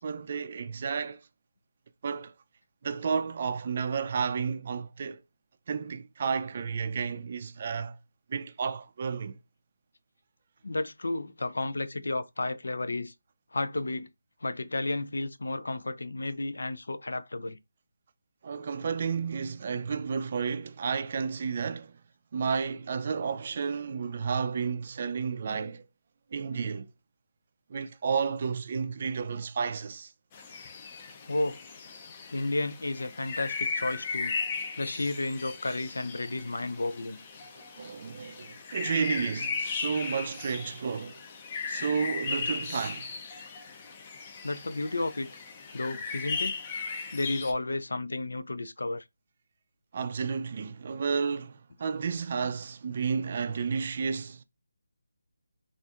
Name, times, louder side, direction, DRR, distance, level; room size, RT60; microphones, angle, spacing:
voice 1, 0.0-1.2 2.0-2.3 2.8-5.2 5.7-8.0 8.3-9.4 18.4-22.0 22.3-25.9 26.3-26.9 27.7-30.1 37.8-41.2 41.7-43.1 49.9-54.4, right 5 dB, 40° right, 0.4 m, -32 dB
voice 2, 10.6-13.1 13.5-14.1 14.4-17.6 31.2-31.6 32.3-34.4 34.8-37.2 44.4-45.3 45.7-46.6 47.1-49.0, left 2 dB, 75° left, 0.4 m, -32 dB
sound 1, 30.3-47.5, left 5 dB, 25° left, 0.5 m, -37 dB
4.1 x 2.5 x 2.4 m
figure-of-eight pair, 160°, 0 cm